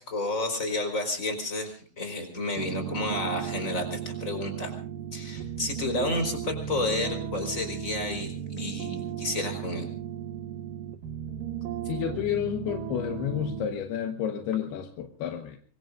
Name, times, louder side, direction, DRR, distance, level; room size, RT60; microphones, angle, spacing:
voice 1, 0.0-4.7 5.1-9.9, left 2 dB, 20° left, 6 dB, 4.2 m, -31 dB
sound 1, 2.6-13.7, right 8 dB, 65° right, 2.6 m, -35 dB
voice 2, 11.9-15.6, left 9 dB, 85° left, 6 dB, 3.2 m, -30 dB
25.0 x 23.0 x 2.5 m, 0.43 s
omnidirectional pair, 4.5 m